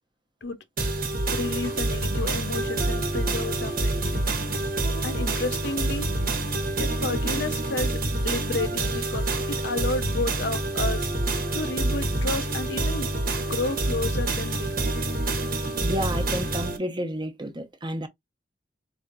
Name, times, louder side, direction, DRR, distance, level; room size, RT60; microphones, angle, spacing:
sound 1, 0.8-16.8, right 2 dB, 55° right, 1.1 m, -27 dB
voice 1, 1.3-4.3 5.0-7.9 8.2-11.1 11.5-13.1 13.4-15.0, left 3 dB, 90° left, 0.9 m, -32 dB
voice 2, 15.8-18.1, equal, 25° right, 0.8 m, -31 dB
4.6 x 3.5 x 2.6 m
head